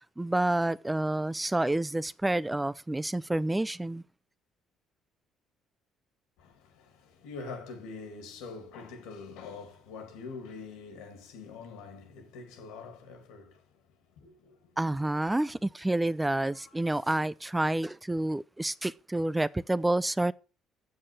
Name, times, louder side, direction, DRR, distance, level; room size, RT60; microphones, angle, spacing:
voice 1, 0.2-4.0 14.8-20.3, right 1 dB, 10° right, 0.4 m, -29 dB
voice 2, 6.4-13.8 14.1-14.6 16.5-16.7, left 4 dB, 90° left, 2.5 m, -45 dB
7.5 x 6.6 x 6.2 m
supercardioid pair, 85°, 0 cm